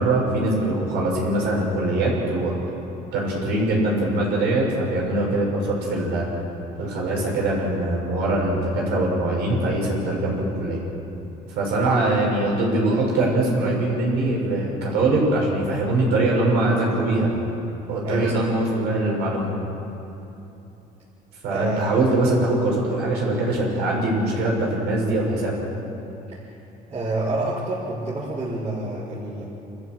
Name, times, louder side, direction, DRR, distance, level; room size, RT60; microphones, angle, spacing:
voice 1, 0.0-2.5 3.1-6.3 6.8-10.8 11.5-17.3 17.9-19.5 21.4-25.5, right 2 dB, 85° right, -2 dB, 6.5 m, -22 dB
voice 2, 18.0-18.4 21.5-21.9 26.3-26.5 26.9-29.4, right 2 dB, 40° right, -10 dB, 5.5 m, -27 dB
27.5 x 14.5 x 7.9 m, 2.9 s
cardioid pair, 110°, 17 cm